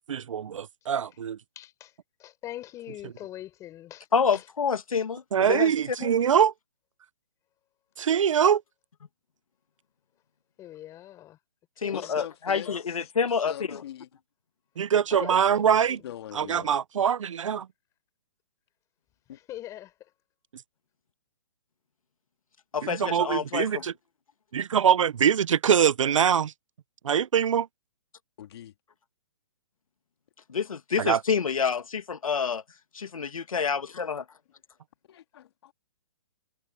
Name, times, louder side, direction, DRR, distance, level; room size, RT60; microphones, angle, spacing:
voice 1, 0.1-1.4 5.3-6.5 8.0-8.6 14.8-16.0 16.3-17.7 22.8-23.9 24.5-26.5 27.0-27.7 31.0-31.2, right 8 dB, 65° right, 1.0 m, -23 dB
voice 2, 1.6-1.9 2.2-4.1 4.3-4.4 10.6-11.4 11.8-12.1 15.1-16.0 19.5-19.9, left 13 dB, 20° left, 5.1 m, -41 dB
voice 3, 4.1-5.7 6.0-6.1 11.8-13.8 22.7-23.8 30.5-32.6 32.9-34.2, left 6 dB, 85° left, 2.3 m, -28 dB
voice 4, 11.9-12.7 13.0-14.1 16.0-16.8 19.3-19.4 28.4-28.7 35.1-35.7, left 11 dB, 50° left, 2.5 m, -42 dB
hypercardioid pair, 155°, 17 cm